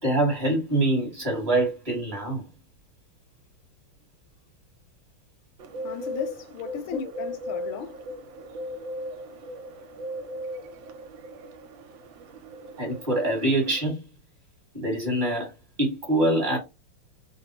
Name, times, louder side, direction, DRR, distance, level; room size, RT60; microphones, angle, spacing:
voice 1, 0.0-2.5 6.9-7.0 12.8-14.0 14.7-15.5 15.8-16.6, right 1 dB, 25° right, 1.3 m, -24 dB
Bird, 5.6-13.9, equal, 75° right, 1.3 m, -38 dB
voice 2, 5.8-8.1, left 8 dB, 80° left, 1.4 m, -35 dB
3.3 x 2.2 x 2.8 m
omnidirectional pair, 2.3 m